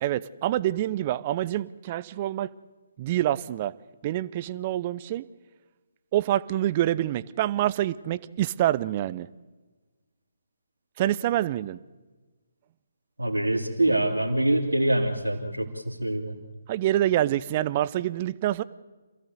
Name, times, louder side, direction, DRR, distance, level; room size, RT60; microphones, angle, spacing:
voice 1, 0.0-2.5 3.0-3.7 4.0-5.2 6.1-9.3 11.0-11.8 16.7-18.6, right 13 dB, 30° right, 17 dB, 0.7 m, -26 dB
voice 2, 13.2-16.3, right 1 dB, 75° right, -5 dB, 3.0 m, -25 dB
27.0 x 15.5 x 8.0 m, 1.3 s
figure-of-eight pair, 140°, 0 cm